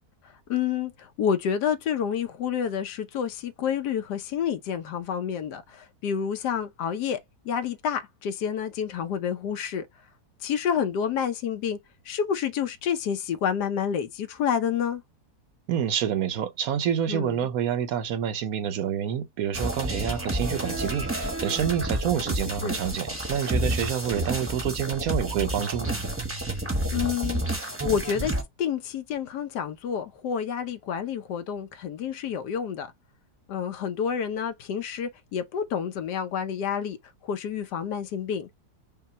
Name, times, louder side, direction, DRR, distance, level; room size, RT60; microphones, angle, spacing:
voice 1, 0.5-7.2 7.4-9.9 10.4-11.8 12.1-15.0 17.1-17.5 22.6-22.8 26.9-28.3 28.6-32.9 33.5-37.0 37.2-38.5, left 8 dB, 80° left, 1.3 m, -29 dB
voice 2, 15.7-26.0, right 9 dB, 70° right, 1.0 m, -28 dB
sound 1, 19.5-28.4, right 1 dB, 10° right, 0.8 m, -30 dB
5.6 x 2.2 x 4.2 m
omnidirectional pair, 1.8 m